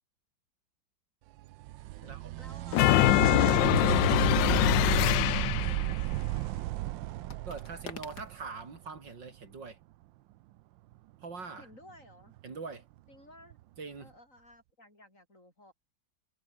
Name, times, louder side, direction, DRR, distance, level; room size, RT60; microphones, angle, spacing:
sound 1, 1.4-9.0 12.4-12.5 13.5-13.6, right 16 dB, 90° right, 1.3 m, -33 dB
sound 2, 1.5-1.6 2.7-4.7 7.3-8.5, left 5 dB, 60° left, 3.1 m, -48 dB
voice 1, 2.0-6.6 11.6-12.3 13.1-13.6 14.0-15.7, left 1 dB, 40° left, 8.6 m, -56 dB
sound 3, 2.7-5.9, left 16 dB, 80° left, 1.3 m, -24 dB
voice 2, 7.5-9.8 11.2-11.7 12.4-12.8 13.8-14.1, right 4 dB, 70° right, 4.1 m, -43 dB
omnidirectional pair, 2.0 m